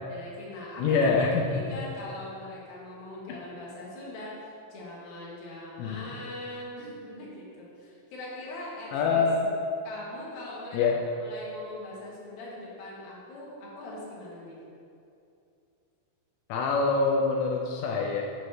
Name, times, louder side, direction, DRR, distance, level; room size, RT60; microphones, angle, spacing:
voice 1, 0.1-9.3 9.8-10.9 11.2-14.6, left 1 dB, 65° left, -5 dB, 2.5 m, -41 dB
voice 2, 0.8-1.4 5.8-6.1 8.9-9.5 10.7-11.0 16.5-18.2, left 4 dB, 90° left, 0 dB, 2.5 m, -25 dB
7.9 x 3.1 x 5.7 m, 2.6 s
omnidirectional pair, 5.7 m